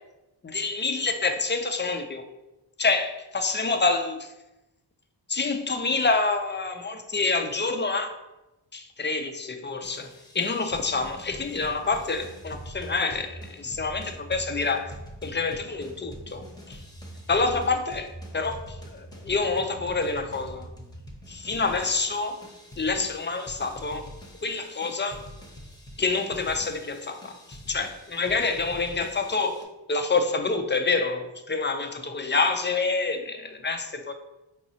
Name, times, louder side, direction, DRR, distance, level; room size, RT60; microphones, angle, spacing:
voice 1, 0.4-2.3 2.8-4.3 5.3-8.1 8.7-10.1 10.3-14.9 15.2-16.8 17.3-18.1 18.3-20.7 21.3-22.4 22.8-24.1 24.4-25.2 26.0-29.6 29.9-34.1, left 3 dB, 25° left, 6 dB, 0.5 m, -27 dB
sound 1, 9.8-29.6, equal, 10° left, 0.8 m, -44 dB
4.5 x 3.0 x 2.7 m, 0.98 s
cardioid pair, 45°, 47 cm